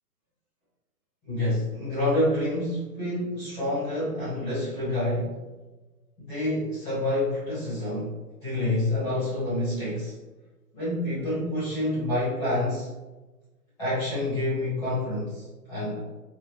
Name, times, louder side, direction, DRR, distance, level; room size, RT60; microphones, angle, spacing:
voice 1, 1.3-5.4 6.3-8.1 8.4-10.2 10.7-12.9 13.8-16.0, left 1 dB, 5° left, -15 dB, 0.9 m, -28 dB
3.0 x 2.6 x 2.7 m, 1.2 s
hypercardioid pair, 175°, 48 cm